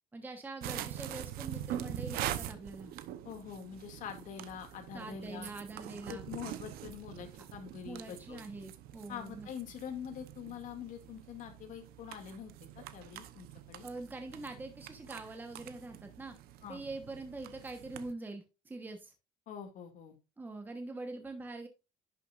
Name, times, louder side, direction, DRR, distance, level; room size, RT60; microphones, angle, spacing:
voice 1, 0.1-2.9 4.9-6.2 7.8-9.5 13.8-16.3 16.7-19.1 20.4-21.7, right 2 dB, 10° right, 5 dB, 1.1 m, -44 dB
sound 1, 0.6-18.1, right 12 dB, 75° right, 0.8 m, -44 dB
voice 2, 3.2-5.5 6.1-8.4 9.1-12.5 12.9-13.8 16.6-16.8 19.5-20.2, left 8 dB, 55° left, 5 dB, 2.3 m, -45 dB
11.0 x 6.4 x 2.5 m, 0.27 s
cardioid pair, 155°, 16 cm